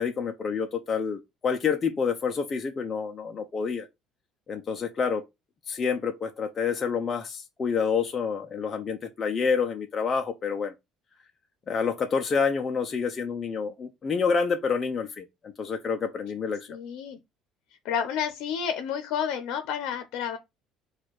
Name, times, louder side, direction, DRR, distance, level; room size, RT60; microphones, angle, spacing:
voice 1, 0.0-3.9 4.5-5.2 5.7-10.7 11.7-16.7, left 5 dB, 20° left, 0.4 m, -28 dB
voice 2, 16.7-17.2 17.8-20.4, left 8 dB, 65° left, 0.6 m, -30 dB
4.3 x 2.3 x 4.5 m
cardioid pair, 175°, 0 cm